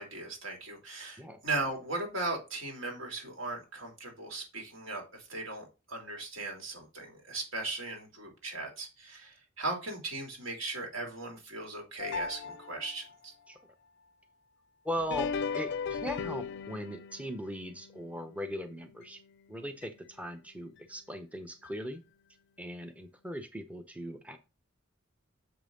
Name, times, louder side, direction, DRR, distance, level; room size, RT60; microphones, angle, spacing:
voice 1, 0.0-13.3, right 2 dB, 80° right, 1 dB, 2.9 m, -38 dB
sound 1, 12.0-13.1 15.0-19.4 19.8-19.9 20.8-20.9 21.6-21.7, left 5 dB, 60° left, 0.4 m, -38 dB
voice 2, 14.8-19.2 19.5-22.0 22.6-24.4, equal, 5° right, 7 dB, 0.6 m, -39 dB
6.8 x 5.5 x 3.7 m, 0.28 s
head